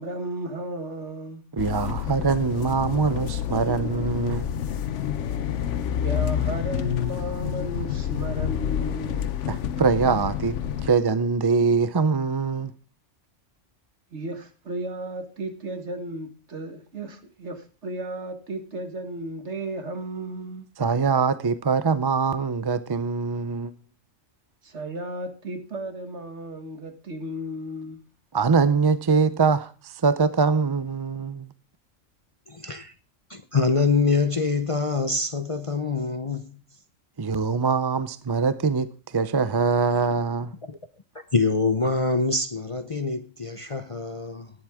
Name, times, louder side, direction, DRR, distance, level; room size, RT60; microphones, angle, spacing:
voice 1, 0.0-1.4 5.9-9.3 14.1-20.7 24.6-28.0, right 2 dB, 60° right, 1.9 m, -34 dB
voice 2, 1.5-4.6 9.5-12.7 20.8-23.7 28.3-31.5 37.2-40.5, right 5 dB, 35° right, 0.4 m, -23 dB
sound 1, 1.6-10.9, left 9 dB, 70° left, 1.1 m, -28 dB
voice 3, 32.5-32.9 33.3-36.6 40.7-40.8 41.3-44.5, left 4 dB, 30° left, 0.7 m, -25 dB
18.5 x 7.7 x 3.5 m
omnidirectional pair, 1.3 m